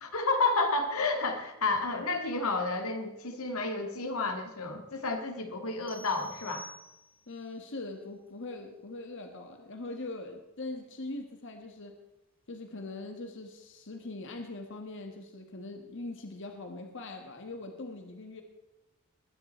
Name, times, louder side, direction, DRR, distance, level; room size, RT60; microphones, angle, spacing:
voice 1, 0.0-6.7, left 3 dB, 90° left, 5 dB, 1.9 m, -31 dB
sound 1, 5.9-7.4, left 1 dB, 10° right, 1.8 m, -49 dB
voice 2, 7.3-12.0 12.5-18.4, left 2 dB, 60° left, 5 dB, 1.5 m, -41 dB
20.5 x 10.0 x 4.3 m, 0.98 s
head